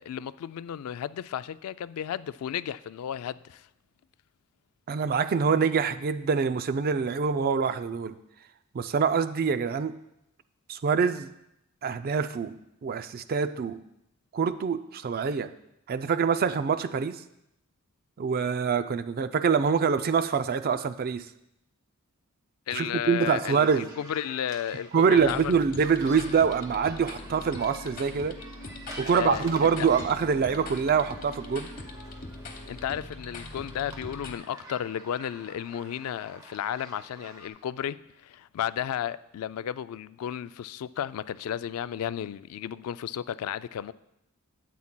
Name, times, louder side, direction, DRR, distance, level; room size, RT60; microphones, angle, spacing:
voice 1, 0.0-3.7 22.7-25.6 29.1-29.5 29.8-29.9 32.7-38.0 38.2-43.9, left 9 dB, 80° left, 15 dB, 0.3 m, -33 dB
voice 2, 4.9-8.2 8.7-10.0 10.7-11.3 11.8-12.6 12.8-13.8 14.3-15.5 15.9-17.2 18.2-21.3 22.7-23.9 24.9-28.4 29.0-31.7, right 6 dB, 45° right, 12 dB, 0.3 m, -25 dB
sound 1, 23.1-37.5, equal, 15° right, 1.0 m, -48 dB
sound 2, 25.1-34.3, left 2 dB, 40° left, 1.0 m, -42 dB
12.5 x 8.4 x 2.2 m, 0.84 s
head